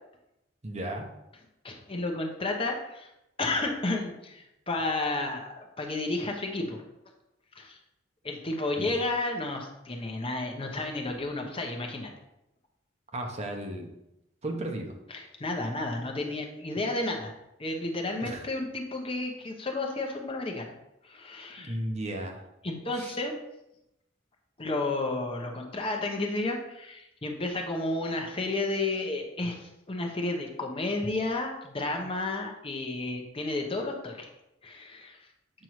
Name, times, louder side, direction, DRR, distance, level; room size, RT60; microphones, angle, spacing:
voice 1, 0.6-1.1 8.8-8.9 13.1-13.9 14.4-14.9 18.2-18.5 21.6-22.4 22.9-23.1, right 1 dB, 35° right, 3 dB, 0.8 m, -34 dB
voice 2, 1.6-3.1 3.4-6.8 7.6-7.8 8.2-12.1 15.1-17.3 17.6-20.7 21.0-21.8 22.6-23.3 24.6-34.3 34.6-35.2, left 2 dB, 30° left, 2 dB, 0.9 m, -32 dB
7.6 x 5.3 x 3.1 m, 0.87 s
head